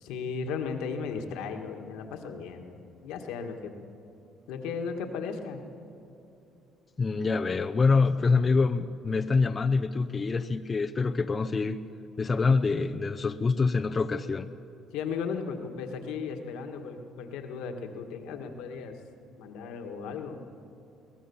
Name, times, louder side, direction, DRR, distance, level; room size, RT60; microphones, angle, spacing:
voice 1, 0.0-3.7 4.5-5.7 14.9-19.0 19.4-20.4, left 5 dB, 90° left, 4 dB, 1.8 m, -36 dB
voice 2, 7.0-11.8 12.2-14.5, left 4 dB, 30° left, 7 dB, 0.7 m, -25 dB
23.0 x 17.5 x 7.2 m, 2.7 s
cardioid pair, 110°, 0 cm